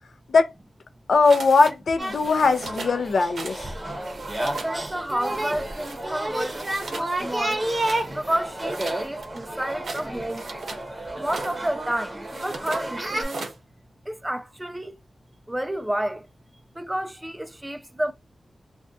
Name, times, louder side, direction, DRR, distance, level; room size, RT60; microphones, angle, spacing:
voice 1, 1.1-3.6, left 4 dB, 75° left, 0.5 m, -20 dB
sound 1, 1.2-1.7 2.0-3.0 3.3-3.7 3.9-4.7 5.2-6.0 6.4-7.1 7.5-8.1 8.6-10.8 11.2-11.6 12.2-12.8 13.2-13.6, right 3 dB, 85° right, 0.9 m, -38 dB
sound 2, 2.0-13.2, right 1 dB, 25° right, 0.8 m, -31 dB
voice 2, 4.4-7.6 8.1-10.5 11.2-13.5 14.1-14.9 15.5-16.3 16.8-18.1, right 1 dB, 10° right, 0.3 m, -30 dB
2.5 x 2.2 x 3.5 m
wide cardioid pair, 115°, 0 cm